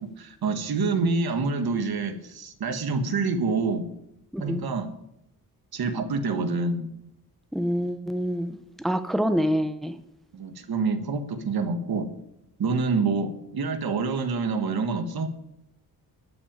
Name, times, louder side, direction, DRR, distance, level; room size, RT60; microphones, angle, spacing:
voice 1, 0.2-3.8 4.4-4.9 5.7-6.9 10.3-12.1 12.6-15.3, right 4 dB, 75° right, 8 dB, 1.6 m, -27 dB
voice 2, 4.3-4.6 7.5-8.5 8.8-9.9, equal, ahead, 10 dB, 0.8 m, -26 dB
12.5 x 6.0 x 8.8 m, 0.82 s
wide cardioid pair, 115°, 37 cm